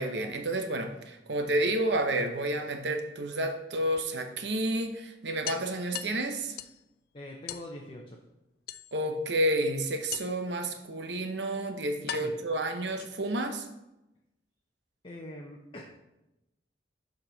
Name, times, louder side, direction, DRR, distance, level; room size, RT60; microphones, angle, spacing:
voice 1, 0.0-6.5 8.9-13.6, right 1 dB, 75° right, 5 dB, 0.8 m, -30 dB
sound 1, 1.4-2.5 4.0-4.1 4.4-4.5 4.8-4.9 5.4-6.8 7.5-7.7 8.7-9.2 10.1-10.5 11.4-11.5 12.1-13.4, left 10 dB, 55° left, 0.3 m, -41 dB
voice 2, 7.1-8.2 12.1-12.3 15.0-15.8, left 1 dB, 30° left, 0 dB, 0.7 m, -43 dB
7.3 x 5.3 x 3.9 m, 0.93 s
head